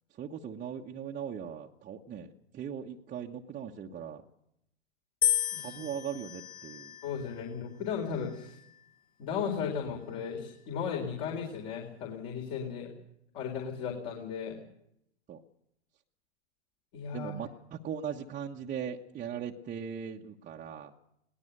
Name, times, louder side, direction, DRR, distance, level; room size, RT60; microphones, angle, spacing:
voice 1, 0.1-4.2 5.6-7.0 15.3-15.4 17.1-20.9, right 8 dB, 25° right, -1 dB, 1.2 m, -39 dB
sound 1, 5.2-7.4 8.2-8.8, left 10 dB, 25° left, 1.3 m, -33 dB
voice 2, 7.0-8.6 9.2-12.9 13.3-14.6 16.9-17.3, left 7 dB, 45° left, 1 dB, 4.1 m, -35 dB
21.5 x 18.0 x 6.7 m, 0.78 s
figure-of-eight pair, 100°, 35 cm